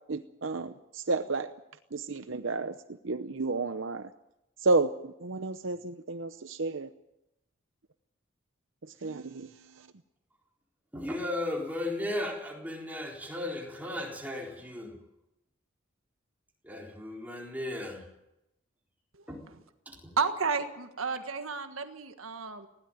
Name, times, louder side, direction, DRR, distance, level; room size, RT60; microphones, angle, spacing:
voice 1, 0.1-1.5 1.9-2.7 3.0-4.1 4.6-6.9 9.0-9.5, right 3 dB, 70° right, 10 dB, 0.8 m, -31 dB
voice 2, 10.9-15.0 16.6-18.1 19.3-19.4 19.9-20.2, left 1 dB, 10° right, -1 dB, 4.1 m, -35 dB
voice 3, 20.2-22.7, right 5 dB, 85° right, 7 dB, 1.6 m, -32 dB
20.0 x 16.5 x 9.2 m, 0.89 s
head